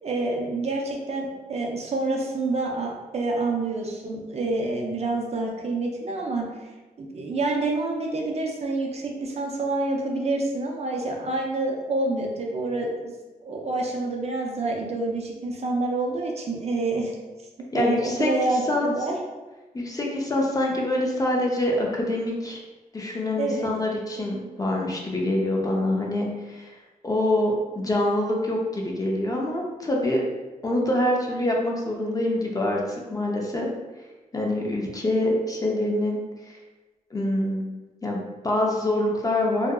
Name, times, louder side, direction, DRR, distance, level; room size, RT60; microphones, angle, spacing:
voice 1, 0.0-6.5 7.0-13.1 13.4-17.1 17.7-19.1 23.4-23.7, right 2 dB, 45° right, 0 dB, 0.4 m, -27 dB
voice 2, 17.7-18.3 18.7-18.9 19.7-22.6 22.9-26.7 27.0-30.2 30.6-33.7 34.3-36.2 36.5-36.6 37.1-37.7 38.0-39.7, left 1 dB, 25° left, -1 dB, 0.4 m, -25 dB
2.7 x 2.3 x 2.2 m, 1.2 s
wide cardioid pair, 150°, 15 cm